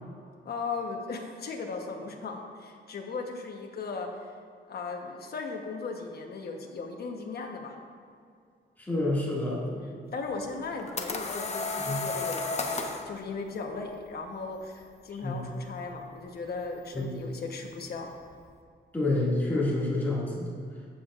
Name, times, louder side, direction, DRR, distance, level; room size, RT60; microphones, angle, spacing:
voice 1, 0.4-4.1 4.7-7.8 9.7-18.1, left 4 dB, 55° left, 2 dB, 1.1 m, -37 dB
voice 2, 8.8-9.6 11.8-12.0 15.2-15.4 16.9-17.1 18.9-20.5, left 2 dB, 10° left, -7 dB, 2.1 m, -28 dB
sound 1, 10.5-13.1, left 3 dB, 35° left, 0.7 m, -32 dB
14.5 x 7.2 x 2.5 m, 2.3 s
wide cardioid pair, 165°, 19 cm